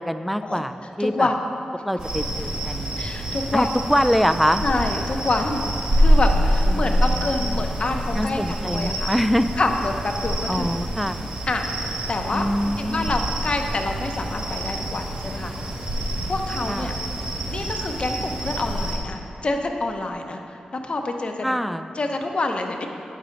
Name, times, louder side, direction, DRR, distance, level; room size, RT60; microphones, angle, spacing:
voice 1, 0.0-1.3 1.8-3.1 3.5-4.6 6.7-7.6 8.1-9.5 10.5-11.2 12.3-13.1 16.7-16.9 21.4-21.9, equal, ahead, 10 dB, 0.3 m, -24 dB
voice 2, 1.0-1.5 3.0-3.7 4.6-9.1 9.6-10.7 11.5-15.5 16.2-17.0 17.5-22.9, left 2 dB, 45° left, 4 dB, 0.8 m, -27 dB
sound 1, 2.0-19.0, equal, 40° right, 1.8 m, -26 dB
9.3 x 6.7 x 3.8 m, 2.7 s
cardioid pair, 80°, 3 cm